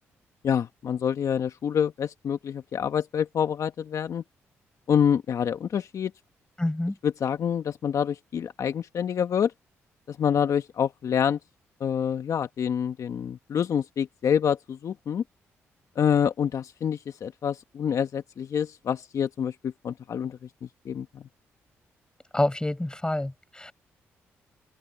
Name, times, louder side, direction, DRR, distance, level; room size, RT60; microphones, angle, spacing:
voice 1, 0.4-4.2 4.9-6.1 7.0-9.5 10.1-11.4 11.8-15.2 16.0-20.4 20.8-21.2, left 8 dB, 60° left, 1.4 m, -27 dB
voice 2, 6.6-7.0 22.3-23.7, left 1 dB, 15° left, 7.3 m, -27 dB
hypercardioid pair, 50°, 6 cm